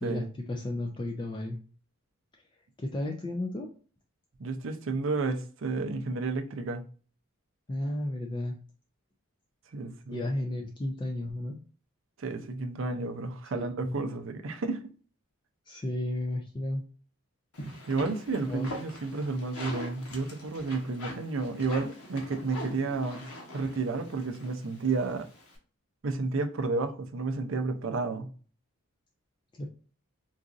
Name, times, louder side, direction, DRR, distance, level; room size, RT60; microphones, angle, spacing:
voice 1, 0.0-1.6 2.8-3.7 7.7-8.6 10.1-11.6 13.5-14.0 15.7-16.8 17.8-17.9 18.5-18.7 29.6-29.7, left 1 dB, 20° left, 0.3 m, -33 dB
voice 2, 4.4-6.8 9.7-10.3 12.2-14.8 17.9-23.3 23.5-25.3 26.0-28.3, right 3 dB, 60° right, 0.5 m, -31 dB
sound 1, 17.5-25.6, left 1 dB, 90° left, 1.1 m, -43 dB
3.9 x 2.5 x 2.4 m
head